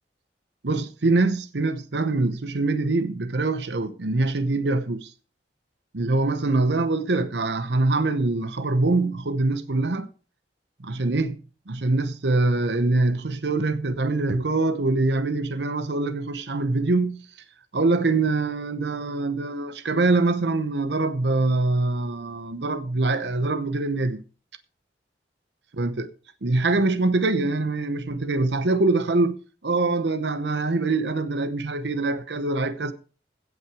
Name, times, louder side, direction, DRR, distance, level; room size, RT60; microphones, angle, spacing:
voice 1, 0.6-5.1 5.9-10.1 10.8-17.3 17.7-24.2 25.7-26.1 26.4-29.4 29.6-32.9, right 2 dB, 80° right, 0.9 m, -24 dB
16.5 x 5.9 x 4.8 m
head